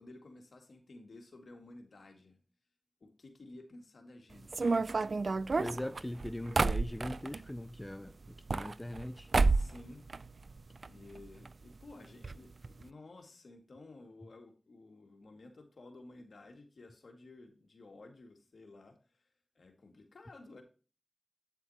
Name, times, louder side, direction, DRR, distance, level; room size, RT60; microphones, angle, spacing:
voice 1, 0.0-2.4 3.0-4.9 9.5-10.1 10.9-19.3 19.6-20.6, left 2 dB, 80° left, 2.1 m, -54 dB
sound 1, 4.5-7.4 8.3-9.1 9.3-9.8 10.1-10.9 11.2-11.3 11.5-11.6 12.2-12.4 12.6-12.8, right 3 dB, 70° right, 0.4 m, -30 dB
voice 2, 5.6-8.2 8.5-9.3, left 1 dB, 20° left, 0.5 m, -40 dB
9.2 x 8.2 x 2.9 m
cardioid pair, 40°, 0 cm